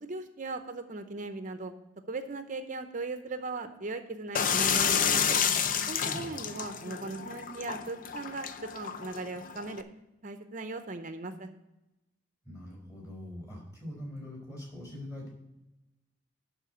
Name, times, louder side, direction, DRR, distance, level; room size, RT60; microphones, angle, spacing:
voice 1, 0.0-1.7 2.1-5.4 5.9-9.8 10.2-11.5, right 3 dB, 40° right, 8 dB, 0.7 m, -38 dB
sound 1, 4.3-9.8, left 7 dB, 45° left, 0.6 m, -30 dB
voice 2, 12.4-15.3, left 1 dB, 20° left, -1 dB, 4.5 m, -42 dB
11.5 x 4.5 x 7.8 m, 0.94 s
head